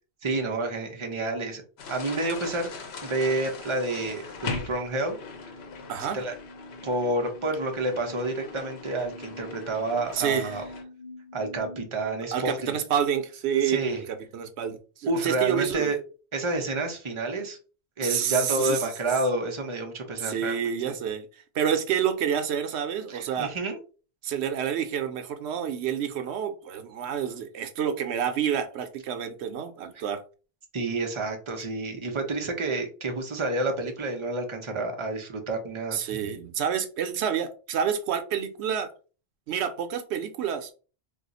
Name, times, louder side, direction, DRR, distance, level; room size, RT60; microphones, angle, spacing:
voice 1, 0.2-1.6 1.9-2.7 3.0-5.2 6.0-6.3 6.8-10.6 11.3-12.8 13.6-14.0 15.1-16.0 16.3-17.6 18.0-20.5 23.1-23.8 30.7-36.0, right 2 dB, 35° right, 3 dB, 0.6 m, -29 dB
sound 1, 1.8-10.8, left 5 dB, 75° left, 0.9 m, -41 dB
sound 2, 2.7-11.8, left 1 dB, 45° left, 0.7 m, -47 dB
voice 2, 5.9-6.2 10.1-10.6 12.3-15.9 18.0-18.9 20.2-23.5 24.2-30.2 35.9-38.9 39.5-40.7, right 8 dB, 90° right, 8 dB, 0.9 m, -28 dB
2.4 x 2.4 x 4.0 m, 0.36 s
omnidirectional pair, 1.1 m